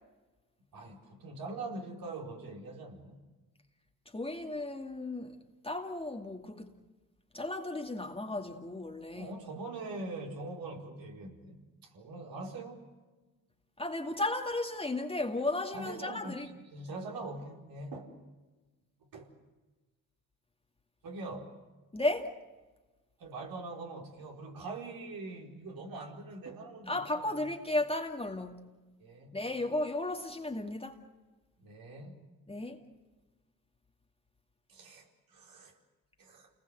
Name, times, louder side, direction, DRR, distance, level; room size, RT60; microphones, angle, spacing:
voice 1, 0.7-3.2 9.1-12.9 15.7-18.1 19.1-19.3 21.0-21.6 23.2-27.5 29.0-29.4 31.6-32.2 34.7-35.8 36.2-36.5, right 2 dB, 65° right, 4.8 m, -43 dB
voice 2, 4.1-5.4 5.6-6.7 7.3-9.3 13.8-16.5 21.9-22.4 26.9-28.6 29.3-31.0 32.5-32.8, left 2 dB, 15° left, 2.3 m, -34 dB
28.5 x 20.0 x 8.0 m
supercardioid pair, 70°, 38 cm